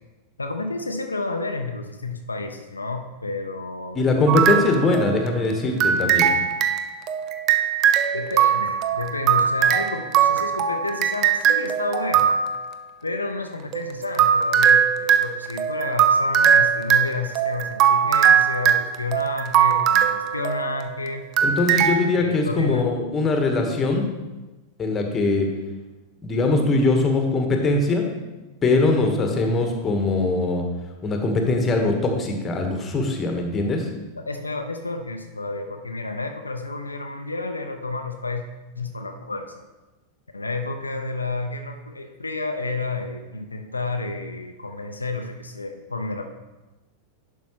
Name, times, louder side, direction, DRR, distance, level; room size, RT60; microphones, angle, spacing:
voice 1, 0.4-4.0 8.1-12.3 13.0-21.2 22.2-22.9 34.1-38.4 38.8-39.6 40.3-46.3, left 3 dB, 80° left, 5 dB, 0.5 m, -30 dB
voice 2, 3.9-6.3 21.4-24.1 24.8-25.5 26.2-28.1 28.6-30.6 31.0-33.9, left 2 dB, 20° left, 3 dB, 1.2 m, -21 dB
sound 1, 4.3-5.4 5.8-12.7 13.7-20.9 21.4-22.0, right 8 dB, 35° right, 0.5 m, -20 dB
10.5 x 5.4 x 3.0 m, 1.1 s
figure-of-eight pair, 90°, 0 cm